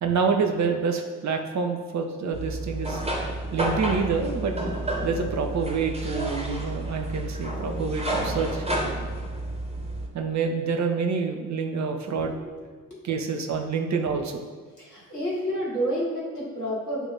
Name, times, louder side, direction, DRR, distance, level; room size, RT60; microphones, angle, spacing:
voice 1, 0.0-3.1 3.5-4.5 5.0-8.6 10.1-12.4 13.0-14.4, right 5 dB, 40° right, 4 dB, 0.9 m, -27 dB
sound 1, 2.3-10.1, right 1 dB, 15° right, 1.4 m, -30 dB
voice 2, 14.8-17.1, equal, 90° left, -6 dB, 1.3 m, -29 dB
8.1 x 3.0 x 4.1 m, 1.5 s
figure-of-eight pair, 45°, 45 cm